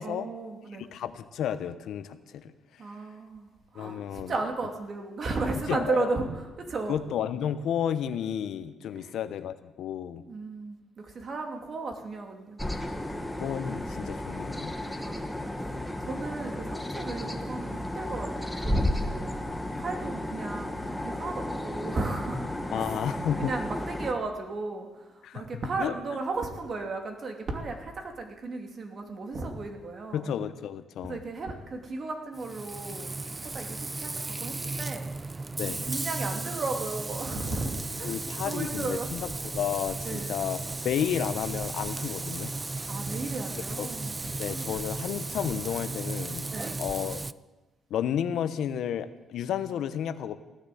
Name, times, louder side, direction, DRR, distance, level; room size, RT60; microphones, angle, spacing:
voice 1, 0.0-0.9 2.8-6.9 8.9-9.1 10.3-12.6 15.0-15.4 16.0-19.3 19.8-22.4 22.7-23.0 23.4-30.3 31.0-33.1 33.4-34.1 34.4-35.1 35.6-39.1 40.0-40.3 42.9-44.7 46.5-46.8, right 3 dB, 50° right, 4 dB, 2.5 m, -35 dB
voice 2, 0.8-2.5 3.7-4.3 5.7-6.1 6.9-10.2 13.2-14.7 22.7-23.5 25.2-25.9 30.1-31.2 35.6-35.8 38.0-42.9 43.7-43.9 44.4-46.5 46.8-47.3 47.9-50.3, left 9 dB, 75° left, 11 dB, 0.9 m, -32 dB
sound 1, 12.6-24.1, left 1 dB, 5° left, 1.4 m, -33 dB
Frying (food), 32.3-47.3, right 3 dB, 20° right, 0.4 m, -35 dB
16.0 x 10.0 x 7.7 m, 1.1 s
cardioid pair, 90°, 0 cm